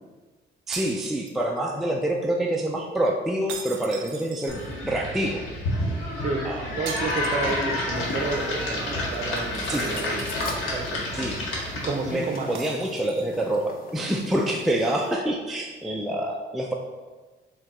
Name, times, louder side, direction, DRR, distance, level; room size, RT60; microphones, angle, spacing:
voice 1, 0.7-5.5 6.4-6.7 7.5-7.6 9.7-10.0 11.1-11.4 12.1-16.7, right 1 dB, ahead, 0 dB, 0.3 m, -27 dB
sound 1, 0.7-1.8 3.5-5.1 6.9-8.1 8.4-8.5 9.8-10.9 12.5-13.5, right 6 dB, 90° right, 0.5 m, -41 dB
sound 2, 4.5-12.2, left 1 dB, 85° left, 1.1 m, -29 dB
voice 2, 6.8-10.3 10.7-11.1 11.8-12.5, right 3 dB, 40° right, 2 dB, 0.6 m, -30 dB
sound 3, 7.9-15.1, left 3 dB, 45° left, 0.6 m, -41 dB
4.6 x 2.3 x 3.6 m, 1.3 s
cardioid pair, 90°, 20 cm